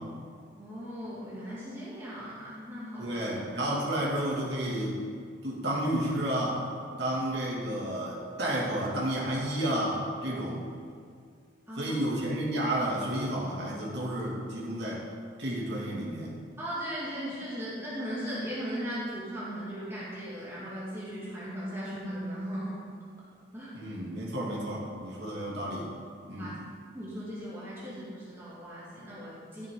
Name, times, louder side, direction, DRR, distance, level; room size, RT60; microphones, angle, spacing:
voice 1, 0.5-3.2 11.7-12.1 16.6-22.8 23.5-23.7 26.4-26.5 26.9-29.7, equal, 15° right, -10 dB, 2.5 m, -37 dB
voice 2, 3.0-5.0 5.4-6.6 7.0-10.6 11.8-15.0 15.4-16.3 23.7-25.9 26.3-26.6, right 1 dB, 60° right, -5 dB, 2.6 m, -31 dB
14.5 x 6.9 x 3.9 m, 2.1 s
head